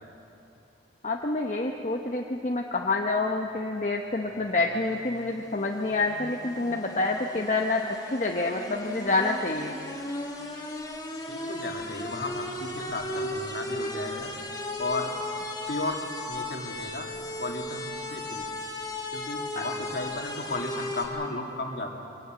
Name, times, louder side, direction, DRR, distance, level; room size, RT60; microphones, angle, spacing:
voice 1, 1.0-9.8 19.6-19.7, left 2 dB, 40° left, 1 dB, 0.9 m, -28 dB
sound 1, 4.3-21.1, left 1 dB, 20° left, 2.0 m, -37 dB
voice 2, 11.3-14.3 14.8-15.1 15.7-17.1 17.4-17.8 18.1-18.5 19.1-22.0, left 2 dB, 55° left, 1 dB, 2.4 m, -34 dB
23.5 x 18.0 x 7.8 m, 2.8 s
head